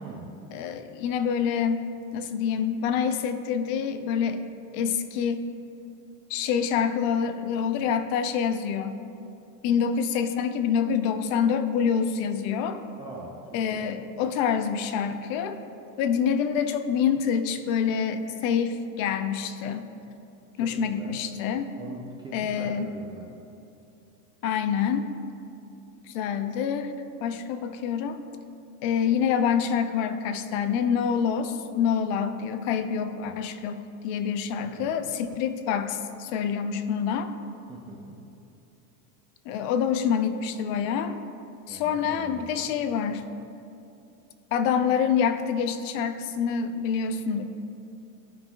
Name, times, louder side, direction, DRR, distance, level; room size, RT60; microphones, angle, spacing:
voice 1, 0.0-0.3 13.0-13.9 20.6-21.2 21.8-23.3 34.5-35.0 37.7-38.2 41.7-42.7, right 2 dB, 10° right, -3 dB, 0.3 m, -42 dB
voice 2, 0.5-4.4 4.7-5.5 6.3-9.0 9.6-12.8 13.5-15.6 16.0-19.8 20.6-21.8 22.3-22.9 24.4-25.1 26.1-26.9 27.2-28.2 28.8-37.3 39.5-41.2 41.7-43.2 44.5-47.4, left 7 dB, 55° left, 9 dB, 0.6 m, -26 dB
14.0 x 5.7 x 2.3 m, 2.7 s
supercardioid pair, 135°, 47 cm